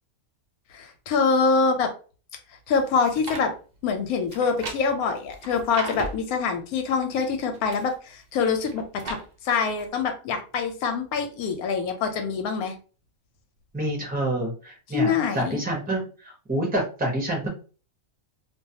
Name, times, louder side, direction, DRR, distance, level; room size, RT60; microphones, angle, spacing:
voice 1, 0.7-1.9 2.7-3.5 3.8-9.2 9.4-12.7 14.9-15.6, left 5 dB, 90° left, 6 dB, 1.1 m, -25 dB
sound 1, 2.8-3.5 4.3-6.3 7.3-7.9 8.5-9.3 9.8-9.9, right 2 dB, 90° right, 0.3 m, -36 dB
voice 2, 13.7-17.5, right 1 dB, 10° right, 0 dB, 0.4 m, -28 dB
2.3 x 2.3 x 2.7 m, 0.36 s
omnidirectional pair, 1.5 m